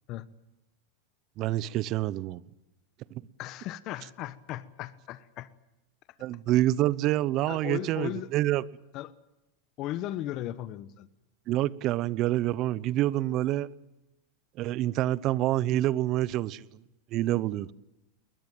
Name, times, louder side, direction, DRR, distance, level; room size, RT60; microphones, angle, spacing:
voice 1, 1.4-2.4 6.2-8.6 11.5-13.7 14.6-16.7 17.1-17.7, right 14 dB, 45° right, 0.8 m, -27 dB
voice 2, 3.4-5.5 7.5-8.3 8.9-9.1 9.8-11.1, left 13 dB, 45° left, 1.1 m, -36 dB
21.5 x 20.0 x 9.2 m
hypercardioid pair, 110°, 0 cm